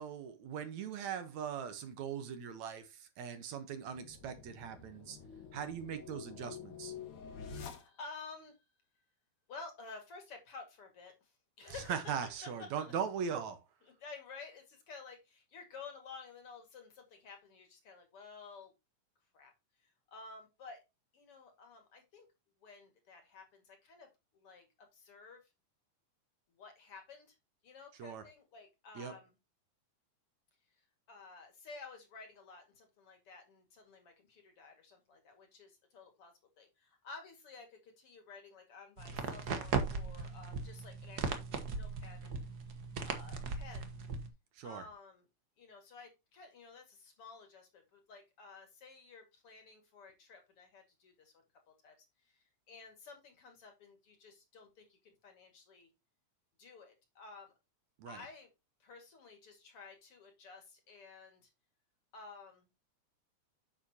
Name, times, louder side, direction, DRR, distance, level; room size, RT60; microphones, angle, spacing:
voice 1, 0.0-5.2 5.5-6.9 11.6-13.6 28.0-28.2 29.0-29.1 44.5-44.8 58.0-58.2, right 7 dB, 70° right, 2.4 m, -40 dB
sound 1, 3.8-8.3, left 6 dB, 65° left, 2.9 m, -49 dB
voice 2, 7.5-8.6 9.5-11.3 11.6-12.2 12.6-12.9 14.0-18.7 19.3-19.5 20.1-20.8 21.1-22.3 22.6-24.1 24.3-25.5 26.5-27.4 27.6-29.3 30.8-42.5 43.0-43.9 44.6-45.2 45.6-51.3 51.7-55.9 56.6-57.5 58.1-58.5 58.8-61.5 62.1-62.7, left 4 dB, 50° left, 2.8 m, -53 dB
sound 2, 39.0-44.3, right 4 dB, 50° right, 1.2 m, -38 dB
8.8 x 7.2 x 2.8 m
omnidirectional pair, 3.5 m